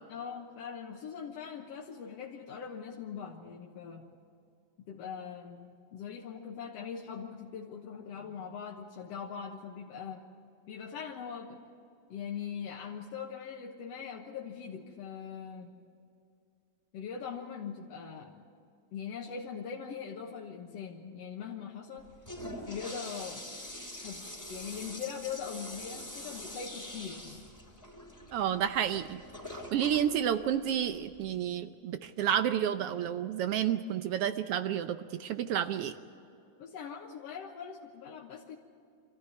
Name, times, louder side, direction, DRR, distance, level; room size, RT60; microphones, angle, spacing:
voice 1, 0.1-4.1 4.9-10.2 10.7-11.6 12.1-15.7 16.9-18.3 18.9-22.1 22.7-23.4 24.0-27.4 36.6-38.6, left 7 dB, 65° left, -1 dB, 2.2 m, -41 dB
Toilet flush, 22.0-31.4, left 1 dB, 5° left, 3.0 m, -45 dB
voice 2, 28.3-29.2 29.5-36.0, right 10 dB, 75° right, 10 dB, 1.4 m, -30 dB
25.5 x 14.5 x 9.6 m, 2.6 s
omnidirectional pair, 3.3 m